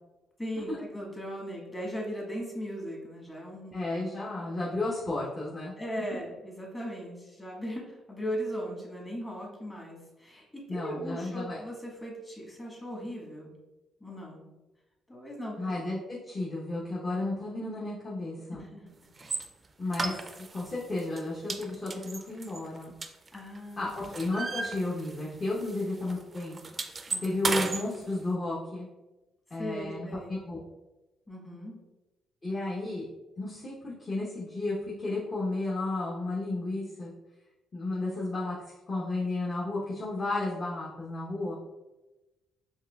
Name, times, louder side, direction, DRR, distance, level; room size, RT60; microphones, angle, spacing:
voice 1, 0.4-3.8 5.8-13.5 14.0-14.4 15.1-15.7 18.5-18.9 23.3-24.1 27.1-27.3 29.6-30.3 31.3-31.7, equal, 20° left, -2 dB, 1.5 m, -38 dB
voice 2, 3.7-5.7 10.7-11.6 15.6-18.6 19.8-20.2 20.5-22.9 23.8-26.6 27.2-28.9 29.5-30.6 32.4-33.1 33.4-37.1 37.7-38.5 38.9-41.5, left 2 dB, 35° left, -6 dB, 0.9 m, -33 dB
sound 1, 19.2-19.4 19.9-20.7 21.0-21.2 21.5-23.6 23.9-25.4 25.6-25.8 26.1-27.8, right 3 dB, 35° right, 0.4 m, -33 dB
4.7 x 3.3 x 2.3 m, 1.1 s
supercardioid pair, 70°, 0 cm